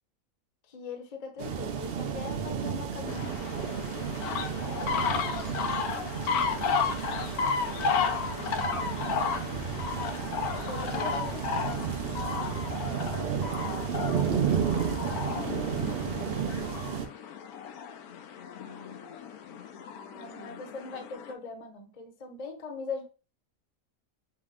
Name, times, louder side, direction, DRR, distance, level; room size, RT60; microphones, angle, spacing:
voice 1, 0.7-5.1 10.7-11.7 20.1-23.0, left 4 dB, 35° left, 0.7 m, -41 dB
sound 1, 1.4-17.1, right 7 dB, 55° right, 0.7 m, -32 dB
sound 2, 3.1-21.3, left 6 dB, 90° left, 1.1 m, -33 dB
voice 2, 5.9-6.9 7.6-10.0 10.6-11.2 12.6-13.3 13.7-16.9 18.1-20.7, left 6 dB, 65° left, 1.2 m, -49 dB
6.0 x 2.1 x 3.6 m
omnidirectional pair, 1.6 m